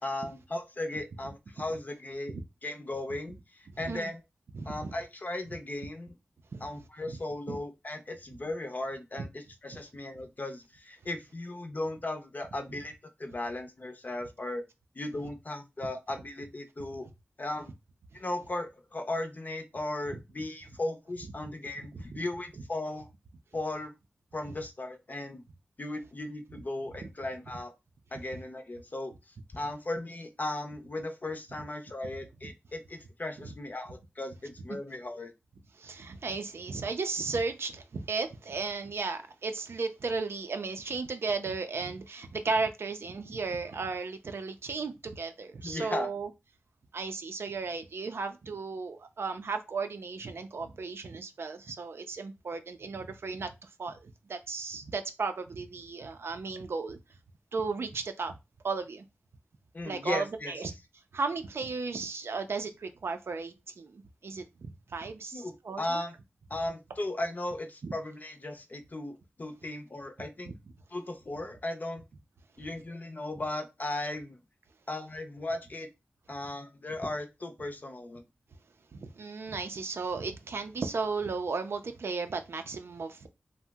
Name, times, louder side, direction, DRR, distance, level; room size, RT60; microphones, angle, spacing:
voice 1, 0.0-2.3 2.6-4.2 4.7-6.1 6.6-14.7 14.9-17.1 17.4-17.7 18.1-23.1 23.5-23.9 24.3-25.4 25.8-27.7 28.1-29.1 29.5-35.3 45.6-46.1 59.7-60.5 65.3-66.1 66.5-70.5 70.9-72.0 72.6-74.4 74.9-75.9 76.3-78.2, left 2 dB, 40° left, 0.5 m, -36 dB
voice 2, 4.5-4.9 6.5-6.7 7.5-7.6 21.9-22.2 27.0-27.1 28.3-28.4 35.8-46.3 46.9-57.0 57.5-58.4 58.6-59.0 59.8-60.7 61.1-66.0 67.8-67.9 78.9-83.3, right 4 dB, 75° right, 0.4 m, -35 dB
2.7 x 2.0 x 3.3 m
wide cardioid pair, 85°, 4 cm